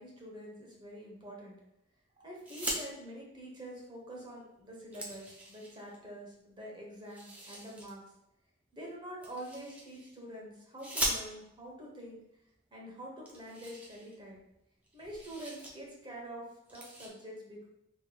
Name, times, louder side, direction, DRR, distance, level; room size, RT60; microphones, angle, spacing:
voice 1, 0.0-1.6 2.2-8.0 8.7-12.2 12.7-14.4 14.9-17.7, equal, 25° right, -2 dB, 1.0 m, -46 dB
sound 1, 2.4-2.8 4.1-4.2 4.6-6.0 7.0-7.9 9.2-10.1 10.8-11.6 12.5-12.6 12.8-12.9 13.2-14.6 14.8-15.7 16.1-16.3 16.6-17.1, right 1 dB, 5° right, 0.6 m, -40 dB
5.0 x 3.0 x 2.2 m, 0.83 s
head